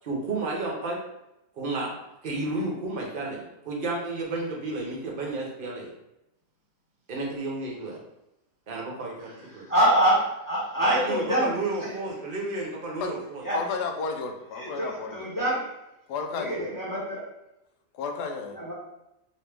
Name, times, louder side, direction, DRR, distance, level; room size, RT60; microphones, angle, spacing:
voice 1, 0.0-1.0 1.6-1.9 2.2-5.9 7.1-8.0 8.7-9.7 10.8-13.4, right 2 dB, 45° right, -2 dB, 0.7 m, -32 dB
voice 2, 9.5-11.5 11.8-11.9 13.4-13.6 14.5-15.7 16.3-17.2 18.5-18.7, right 1 dB, 15° left, -6 dB, 0.7 m, -25 dB
voice 3, 13.5-15.3 16.1-16.6 17.9-18.6, left 5 dB, 90° left, 4 dB, 1.2 m, -32 dB
3.0 x 2.9 x 3.3 m, 0.90 s
omnidirectional pair, 1.7 m